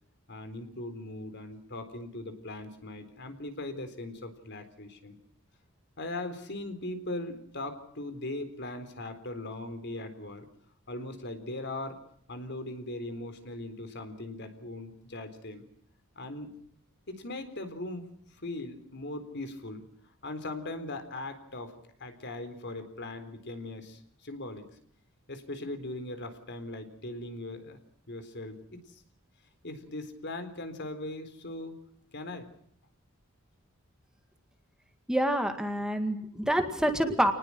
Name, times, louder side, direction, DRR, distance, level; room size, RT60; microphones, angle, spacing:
voice 1, 0.3-5.2 6.0-10.5 10.9-12.0 12.3-15.7 16.2-16.5 17.1-19.8 20.2-24.7 25.3-27.8 28.1-29.0 29.6-31.7 32.1-32.5, left 2 dB, 55° left, 9 dB, 4.0 m, -39 dB
voice 2, 35.1-37.3, equal, 5° right, 6 dB, 2.0 m, -27 dB
29.0 x 20.0 x 6.2 m, 0.65 s
head